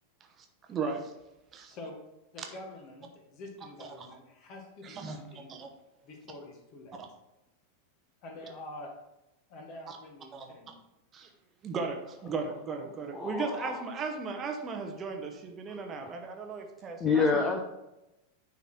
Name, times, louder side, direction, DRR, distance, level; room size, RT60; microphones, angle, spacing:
voice 1, 0.4-1.1 1.5-1.8 3.8-4.1 4.8-5.7 9.9-10.0 10.3-10.5 11.1-11.3 11.6-17.5, right 4 dB, 25° right, 4 dB, 1.0 m, -37 dB
voice 2, 1.7-2.0 2.3-5.5 6.0-7.0 8.2-8.9 9.5-10.8, left 2 dB, 40° left, 3 dB, 1.6 m, -46 dB
voice 3, 13.1-13.8 17.0-17.6, left 4 dB, 20° left, 3 dB, 0.8 m, -27 dB
10.0 x 4.0 x 4.3 m, 0.93 s
figure-of-eight pair, 90°, 0 cm